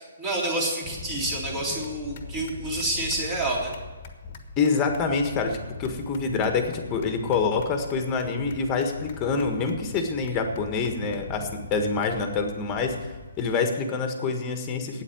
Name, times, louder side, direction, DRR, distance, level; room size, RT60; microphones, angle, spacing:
voice 1, 0.0-3.7, right 2 dB, 20° right, -2 dB, 3.4 m, -28 dB
sound 1, 0.8-13.5, left 4 dB, 40° left, 1.3 m, -41 dB
voice 2, 4.6-13.0 13.4-15.0, left 4 dB, 20° left, 5 dB, 1.6 m, -26 dB
9.0 x 8.3 x 9.3 m, 1.3 s
figure-of-eight pair, 135°, 0 cm